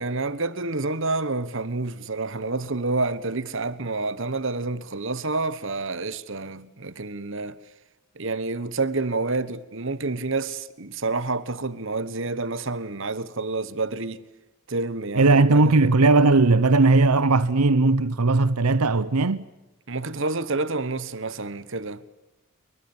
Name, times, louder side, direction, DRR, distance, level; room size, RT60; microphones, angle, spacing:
voice 1, 0.0-7.6 8.1-14.2 14.7-15.8 19.9-22.0, right 3 dB, 55° right, 1.3 m, -28 dB
voice 2, 15.2-19.4, right 3 dB, 85° right, 0.8 m, -18 dB
29.5 x 23.0 x 7.4 m
head